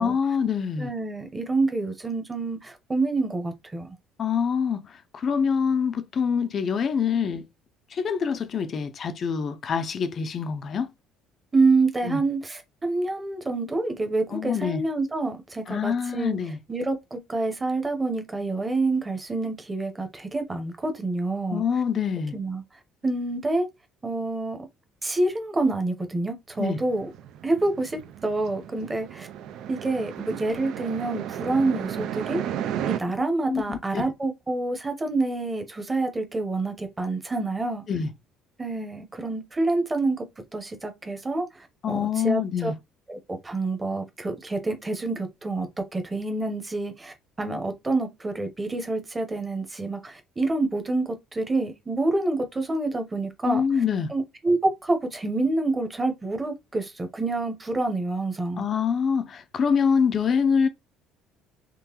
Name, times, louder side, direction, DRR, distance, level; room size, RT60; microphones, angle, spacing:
voice 1, 0.0-0.9 4.2-4.9 5.1-7.4 7.9-10.9 12.0-12.2 14.3-14.8 15.7-16.6 21.5-22.3 26.6-26.8 33.5-34.0 37.9-38.1 41.8-42.7 53.4-54.1 58.6-60.7, left 6 dB, 35° left, 0.5 m, -25 dB
voice 2, 0.8-3.9 11.5-16.4 16.7-21.6 22.3-22.6 23.0-23.7 24.0-24.6 25.0-27.1 27.4-29.3 29.7-32.4 32.9-37.8 38.6-40.3 40.5-42.7 43.1-43.2 43.4-53.6 54.1-58.6, right 2 dB, 15° right, 0.9 m, -27 dB
sound 1, 26.6-33.0, right 10 dB, 60° right, 0.4 m, -34 dB
3.7 x 3.1 x 3.0 m
cardioid pair, 150°, 0 cm